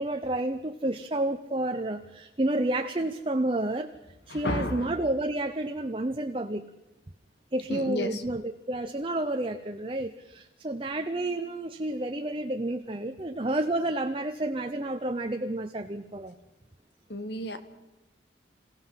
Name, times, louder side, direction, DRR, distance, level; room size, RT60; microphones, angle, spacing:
voice 1, 0.0-3.9 4.3-6.7 7.5-16.4, right 1 dB, 30° right, 6 dB, 0.8 m, -30 dB
voice 2, 4.3-4.9 7.7-8.2 17.1-17.6, left 1 dB, 60° left, 10 dB, 1.8 m, -32 dB
28.0 x 16.5 x 5.7 m, 1.0 s
head